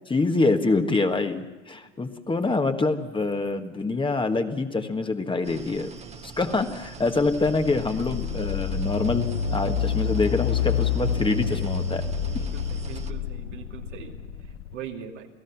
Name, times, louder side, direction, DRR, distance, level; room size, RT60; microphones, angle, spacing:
voice 1, 0.1-5.9 6.2-12.1 12.3-12.4, left 3 dB, 15° left, 6 dB, 1.6 m, -25 dB
sound 1, 5.4-13.1, right 5 dB, 20° right, 1.5 m, -43 dB
voice 2, 6.0-6.3 12.3-14.1 14.7-15.3, right 8 dB, 80° right, 1 dB, 2.8 m, -41 dB
sound 2, 6.9-14.7, left 7 dB, 70° left, 1.7 m, -28 dB
29.0 x 17.0 x 5.9 m, 1.2 s
hypercardioid pair, 85°, 36 cm